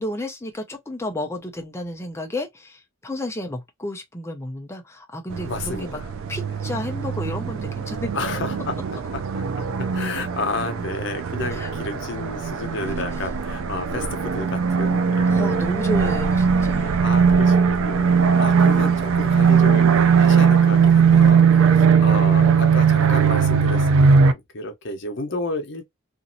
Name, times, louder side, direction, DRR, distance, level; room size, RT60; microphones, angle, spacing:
voice 1, 0.0-6.0 6.3-8.2 11.5-11.7 15.3-17.4, left 1 dB, 10° left, 0.5 m, -32 dB
sound 1, 5.3-24.3, right 6 dB, 70° right, 0.4 m, -19 dB
voice 2, 5.4-6.1 8.1-15.7 16.0-16.1 16.7-25.9, left 2 dB, 55° left, 0.8 m, -32 dB
3.0 x 2.6 x 2.6 m
head